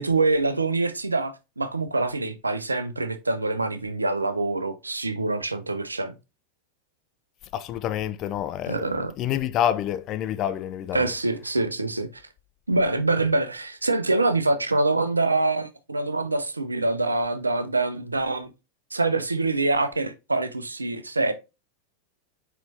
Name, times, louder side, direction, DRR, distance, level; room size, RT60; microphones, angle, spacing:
voice 1, 0.0-6.1 8.7-9.1 10.9-12.1 12.7-18.5 18.9-21.3, right 2 dB, 80° right, 0.5 m, -25 dB
voice 2, 7.5-11.1, left 11 dB, 35° left, 0.4 m, -28 dB
4.5 x 4.3 x 2.6 m
figure-of-eight pair, 90°, 0 cm